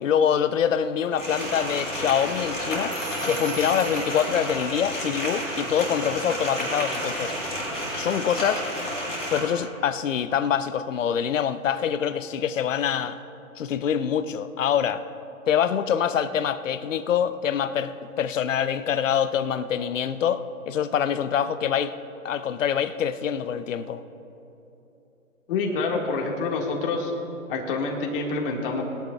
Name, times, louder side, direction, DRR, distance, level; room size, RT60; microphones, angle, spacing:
voice 1, 0.0-3.0 3.2-7.6 8.0-8.7 9.3-13.2 13.6-15.0 15.5-21.9 22.2-24.0, left 8 dB, 60° left, 13 dB, 0.8 m, -25 dB
sound 1, 1.1-9.4, equal, 5° left, 0.4 m, -31 dB
sound 2, 2.9-4.6, right 4 dB, 85° right, 2.3 m, -42 dB
voice 2, 25.5-27.1 27.5-28.8, left 3 dB, 35° left, 0 dB, 1.9 m, -27 dB
20.5 x 11.5 x 2.4 m, 3.0 s
hypercardioid pair, 135°, 43 cm